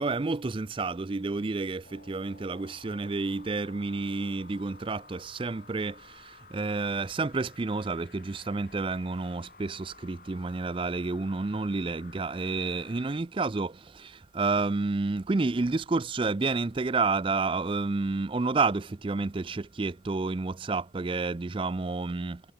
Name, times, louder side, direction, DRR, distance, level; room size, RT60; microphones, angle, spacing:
voice 1, 0.0-22.4, right 3 dB, 25° right, 0.4 m, -30 dB
sound 1, 1.8-13.2, left 4 dB, 45° left, 6.6 m, -54 dB
head